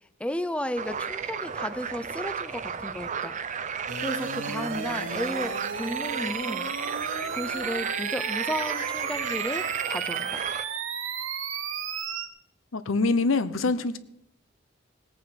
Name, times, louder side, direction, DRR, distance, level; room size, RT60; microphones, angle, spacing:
voice 1, 0.2-3.4 4.0-6.7 7.3-10.5, left 1 dB, 5° left, 12 dB, 0.5 m, -34 dB
sound 1, 0.8-10.7, right 6 dB, 40° right, 0.6 m, -33 dB
sound 2, 3.9-12.3, right 6 dB, 75° right, 1.1 m, -34 dB
voice 2, 12.7-14.0, left 3 dB, 80° left, 13 dB, 0.8 m, -24 dB
18.0 x 8.7 x 5.1 m, 0.78 s
head